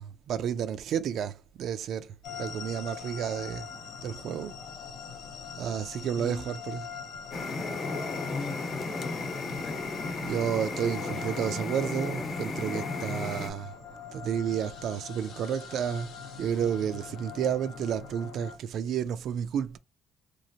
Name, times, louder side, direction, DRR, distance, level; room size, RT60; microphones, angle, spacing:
voice 1, 0.0-3.7 4.0-4.6 5.6-6.9 10.2-13.7 14.1-16.1 16.4-19.8, right 8 dB, 75° right, 0.3 m, -31 dB
sound 1, 2.2-18.6, left 6 dB, 90° left, 0.7 m, -43 dB
voice 2, 6.2-6.5 8.3-10.2, left 5 dB, 35° left, 0.4 m, -41 dB
sound 2, 7.3-13.5, left 3 dB, 60° left, 0.8 m, -34 dB
3.0 x 2.4 x 2.6 m
cardioid pair, 110°, 0 cm